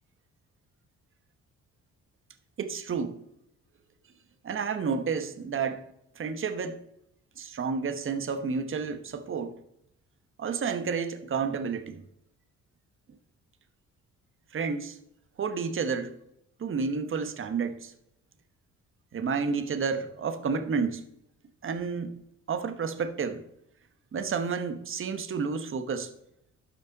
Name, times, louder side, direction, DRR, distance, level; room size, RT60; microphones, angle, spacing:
voice 1, 2.6-3.2 4.4-5.8 6.2-6.8 7.4-9.6 10.4-12.0 14.5-15.0 15.4-16.2 16.6-17.9 19.1-21.0 21.6-22.2 22.5-23.4 24.1-26.1, right 5 dB, 45° right, 9 dB, 1.1 m, -30 dB
12.0 x 5.1 x 4.0 m, 0.78 s
cardioid pair, 90°, 30 cm